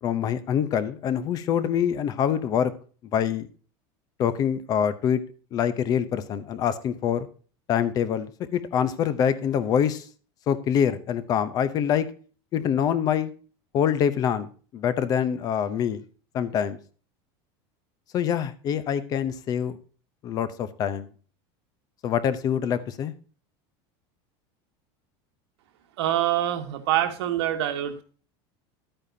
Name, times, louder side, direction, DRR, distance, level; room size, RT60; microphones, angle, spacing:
voice 1, 0.0-2.7 3.1-3.5 4.2-5.2 5.5-7.3 7.7-10.1 10.5-12.1 12.5-13.3 13.7-16.0 16.3-16.8 18.1-19.8 20.2-21.1 22.0-23.1, left 8 dB, 30° left, 0.7 m, -25 dB
voice 2, 26.0-28.0, right 12 dB, 85° right, 1.7 m, -25 dB
12.0 x 8.8 x 2.7 m
supercardioid pair, 175°, 13 cm